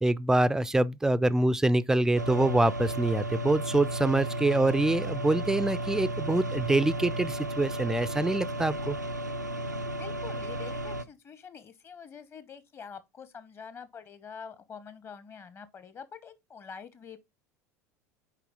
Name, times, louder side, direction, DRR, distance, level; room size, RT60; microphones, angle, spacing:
voice 1, 0.0-9.0, right 2 dB, 5° right, 0.4 m, -25 dB
sound 1, 2.2-11.0, right 1 dB, 90° right, 0.4 m, -34 dB
voice 2, 10.0-17.2, left 7 dB, 25° left, 0.9 m, -46 dB
6.6 x 4.7 x 3.8 m
figure-of-eight pair, 70°, 9 cm